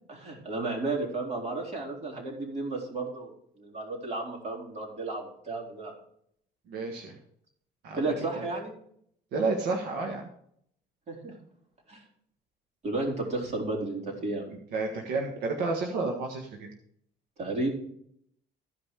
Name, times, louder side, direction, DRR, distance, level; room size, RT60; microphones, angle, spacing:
voice 1, 0.1-3.3 3.6-5.9 7.9-8.7 11.1-11.3 11.9-12.0 12.8-14.5 17.4-17.7, right 2 dB, 45° right, 0 dB, 4.2 m, -33 dB
voice 2, 6.7-7.2 7.8-8.5 9.3-10.3 14.5-16.7, right 3 dB, 80° right, 2 dB, 1.6 m, -31 dB
14.5 x 5.6 x 4.9 m, 0.67 s
cardioid pair, 110°, 17 cm